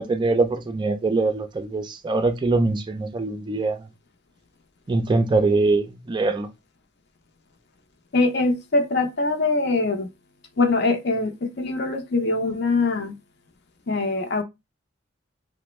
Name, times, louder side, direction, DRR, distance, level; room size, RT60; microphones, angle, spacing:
voice 1, 0.0-3.9 4.9-6.5, right 3 dB, 25° right, 0.3 m, -23 dB
voice 2, 8.1-10.1 10.6-13.1 13.9-14.4, left 3 dB, 55° left, 0.6 m, -23 dB
3.3 x 2.1 x 3.0 m
head